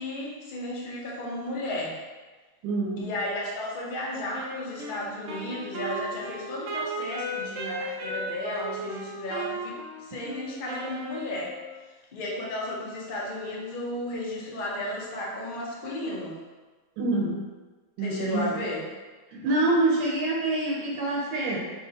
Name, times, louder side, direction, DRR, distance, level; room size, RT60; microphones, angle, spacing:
voice 1, 0.0-2.0 3.0-11.5 12.1-16.4 18.0-18.9, left 1 dB, 65° left, -4 dB, 0.5 m, -34 dB
voice 2, 2.6-3.1 17.0-17.4 18.0-18.6 19.3-21.6, right 2 dB, 85° right, -3 dB, 1.4 m, -26 dB
Wind instrument woodwind instrument, 4.3-11.8, right 1 dB, 70° right, 0.7 m, -36 dB
3.0 x 2.8 x 3.8 m, 1.3 s
omnidirectional pair, 1.9 m